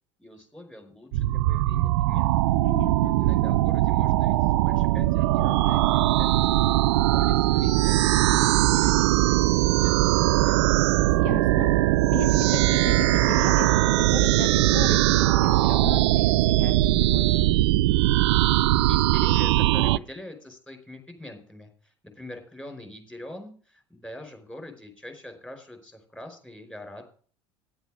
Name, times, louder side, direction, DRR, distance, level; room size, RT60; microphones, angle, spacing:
voice 1, 0.2-2.3 3.2-6.4 7.1-10.8 18.7-27.0, left 1 dB, 10° left, 4 dB, 4.7 m, -44 dB
sound 1, 1.1-20.0, right 16 dB, 70° right, 0.4 m, -21 dB
voice 2, 2.6-3.1 11.2-11.7 12.1-17.7, left 7 dB, 60° left, 8 dB, 1.2 m, -36 dB
10.5 x 8.1 x 6.3 m, 0.42 s
hypercardioid pair, 75°, 15 cm